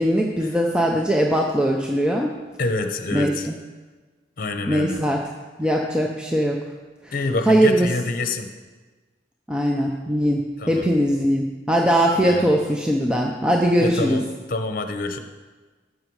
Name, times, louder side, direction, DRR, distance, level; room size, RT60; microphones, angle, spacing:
voice 1, 0.0-2.3 3.1-3.5 4.7-5.2 5.6-6.6 7.0-7.1 7.5-7.9 9.5-14.2, equal, 5° right, 0 dB, 0.7 m, -20 dB
voice 2, 2.6-3.5 4.4-5.0 7.1-8.5 10.6-10.9 12.1-12.5 13.8-15.2, left 2 dB, 50° left, 7 dB, 0.9 m, -27 dB
14.0 x 6.5 x 4.7 m, 1.3 s
head